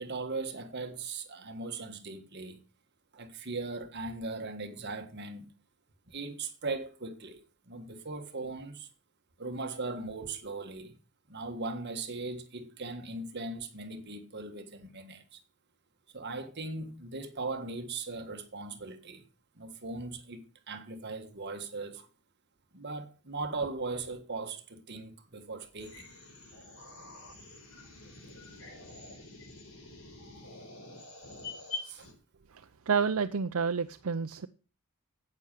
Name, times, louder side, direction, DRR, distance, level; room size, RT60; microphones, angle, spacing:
voice 1, 0.0-2.6 3.1-5.5 6.1-8.9 9.4-11.0 11.3-15.4 16.1-19.3 19.5-22.1 22.7-26.1 31.8-32.1, right 3 dB, 50° right, 1.5 m, -39 dB
sound 1, 25.8-32.1, left 3 dB, 70° left, 4.8 m, -46 dB
voice 2, 32.5-34.5, right 5 dB, 70° right, 0.6 m, -30 dB
10.5 x 8.7 x 7.5 m
head